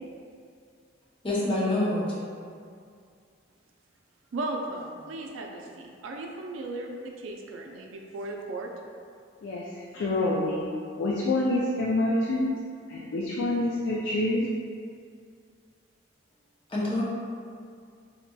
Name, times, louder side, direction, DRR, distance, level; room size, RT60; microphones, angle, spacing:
voice 1, 1.2-2.0 16.7-17.0, left 1 dB, 25° left, -7 dB, 0.6 m, -26 dB
voice 2, 4.3-8.7, right 2 dB, 85° right, 2 dB, 0.4 m, -36 dB
voice 3, 9.9-10.7 11.0-12.5 12.9-14.5, left 2 dB, 75° left, -5 dB, 0.4 m, -26 dB
4.0 x 2.8 x 2.2 m, 2.3 s
head